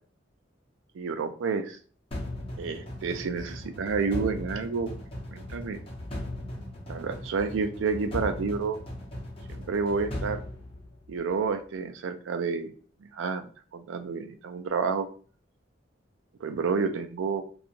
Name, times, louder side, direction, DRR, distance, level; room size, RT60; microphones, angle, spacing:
voice 1, 0.9-1.8 2.6-4.9 5.3-5.8 6.9-8.8 9.5-10.4 11.1-12.7 13.0-13.5 13.7-15.1 16.4-17.4, right 5 dB, 90° right, 8 dB, 0.4 m, -29 dB
sound 1, 2.1-11.3, left 1 dB, 30° left, 0.7 m, -38 dB
2.9 x 2.3 x 2.5 m, 0.41 s
head